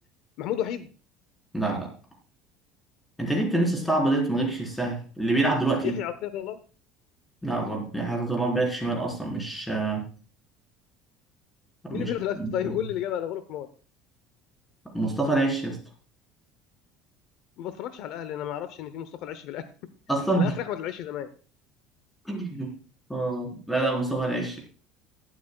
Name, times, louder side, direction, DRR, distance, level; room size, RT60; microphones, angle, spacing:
voice 1, 0.4-0.9 5.8-6.6 11.9-13.7 17.6-19.7 20.3-21.3, left 11 dB, 60° left, 13 dB, 0.7 m, -32 dB
voice 2, 1.5-1.9 3.2-6.0 7.4-10.1 11.8-12.7 14.9-15.8 20.1-20.5 22.3-22.7 23.1-24.6, right 2 dB, 5° left, 0 dB, 4.0 m, -26 dB
17.5 x 12.5 x 2.3 m, 0.38 s
cardioid pair, 160°, 0 cm